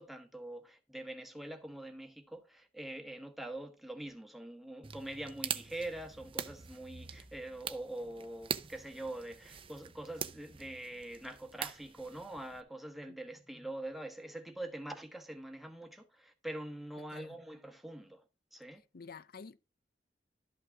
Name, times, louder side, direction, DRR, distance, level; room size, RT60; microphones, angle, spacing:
voice 1, 0.0-18.2 18.5-18.8, right 1 dB, ahead, 1.3 m, -44 dB
sound 1, 4.8-12.6, right 7 dB, 30° right, 0.6 m, -44 dB
voice 2, 18.8-19.6, left 5 dB, 55° left, 0.6 m, -50 dB
12.5 x 5.6 x 3.5 m
head